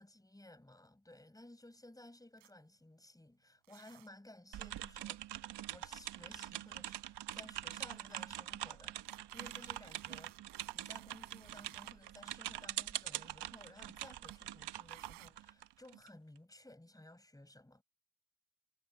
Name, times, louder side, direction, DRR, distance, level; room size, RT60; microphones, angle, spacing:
voice 1, 0.0-10.4 10.7-17.8, left 1 dB, 5° left, 7.5 m, -57 dB
sound 1, 2.4-2.5 3.6-4.1 5.3-6.2 7.0-7.1 7.4-7.5 9.0-11.9 12.9-13.2 14.3-14.4 14.9-15.3, right 19 dB, 85° right, 4.1 m, -60 dB
sound 2, 4.5-16.1, right 12 dB, 55° right, 1.2 m, -44 dB
cardioid pair, 100°, 48 cm